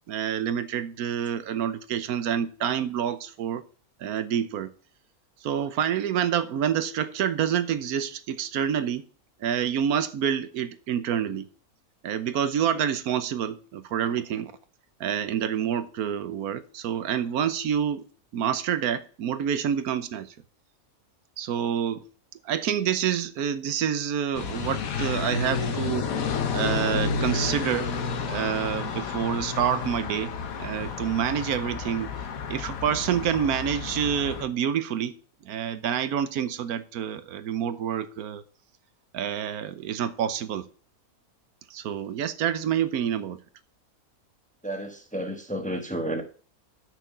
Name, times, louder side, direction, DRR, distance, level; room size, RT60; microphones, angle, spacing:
voice 1, 0.1-3.6 4.0-4.7 5.4-9.0 9.4-11.5 12.0-14.5 15.0-18.1 18.3-20.3 21.4-22.0 22.4-26.1 26.5-27.9 28.3-30.3 30.6-32.1 32.5-35.1 35.4-38.4 39.1-40.7 41.7-43.4, right 9 dB, 80° right, 1.2 m, -27 dB
sound 1, 24.3-34.5, left 5 dB, 70° left, 1.4 m, -31 dB
voice 2, 44.6-46.2, right 1 dB, 5° left, 1.0 m, -31 dB
6.5 x 5.9 x 6.8 m
omnidirectional pair, 1.6 m